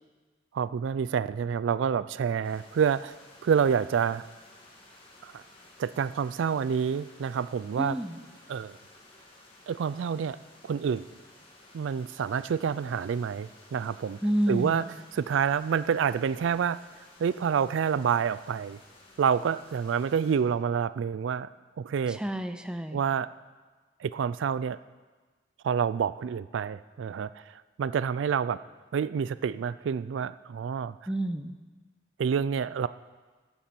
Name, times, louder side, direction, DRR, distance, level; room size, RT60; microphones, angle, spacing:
voice 1, 0.5-3.1 3.4-4.3 5.2-5.4 5.8-8.0 8.5-8.7 9.7-10.4 10.6-11.1 11.7-14.2 14.5-14.8 15.1-16.8 17.2-18.8 19.2-21.5 21.8-22.2 22.9-23.3 24.0-24.8 25.6-27.3 27.8-28.6 28.9-30.9 32.2-32.9, right 7 dB, 75° right, 16 dB, 0.3 m, -28 dB
sound 1, 2.4-20.4, left 2 dB, 30° left, 2.1 m, -55 dB
voice 2, 7.8-8.2 14.2-14.8 22.1-23.0 31.1-31.6, equal, 5° right, 9 dB, 0.5 m, -29 dB
14.0 x 11.5 x 4.4 m, 1.3 s
head